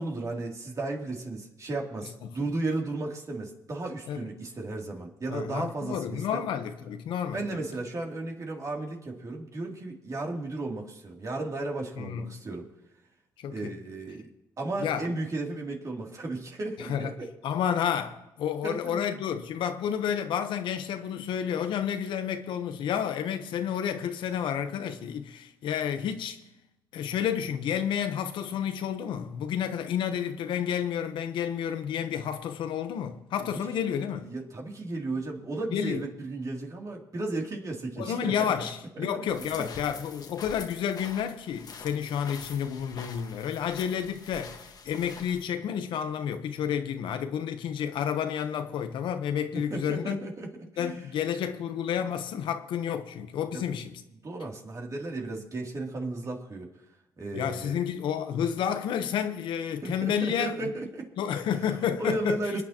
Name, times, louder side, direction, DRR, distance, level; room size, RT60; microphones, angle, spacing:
voice 1, 0.0-6.4 7.3-12.7 13.5-14.3 14.6-17.3 18.6-19.0 33.4-33.6 34.2-38.5 39.0-39.1 39.5-39.7 49.5-51.0 53.5-53.6 54.2-56.7 57.2-57.8 59.8-61.1 62.0-62.6, right 2 dB, 40° right, 2.8 m, -34 dB
voice 2, 5.3-7.4 12.0-12.3 13.4-13.7 14.8-15.1 16.8-17.1 17.4-26.4 26.9-34.3 35.7-36.1 38.0-50.2 50.8-54.0 57.3-60.7 61.2-62.4, left 8 dB, 75° left, 0.9 m, -30 dB
sound 1, 39.3-45.4, left 5 dB, 50° left, 1.5 m, -45 dB
27.5 x 9.4 x 2.9 m
cardioid pair, 80°, 8 cm